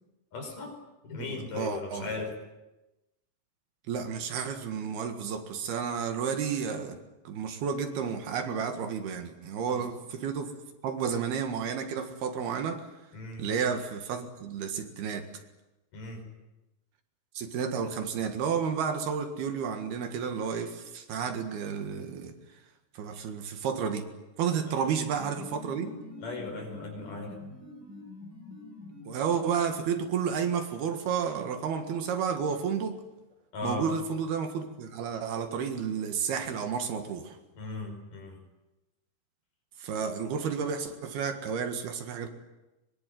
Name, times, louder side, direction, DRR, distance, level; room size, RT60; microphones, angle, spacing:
voice 1, 0.3-0.7 1.0-2.3 9.7-9.8 13.1-13.5 15.9-16.2 24.6-24.7 26.2-27.4 33.5-33.9 37.6-38.4, left 3 dB, 50° left, 4 dB, 6.7 m, -37 dB
voice 2, 1.5-2.1 3.9-7.0 7.3-10.5 10.8-12.8 13.4-15.3 17.4-22.3 23.0-24.1 24.4-26.0 29.1-33.0 33.6-37.4 39.8-42.3, right 6 dB, 70° right, 7 dB, 3.7 m, -31 dB
sound 1, 24.8-29.7, left 2 dB, 20° right, 7.9 m, -46 dB
23.5 x 22.0 x 9.4 m, 1.0 s
omnidirectional pair, 4.8 m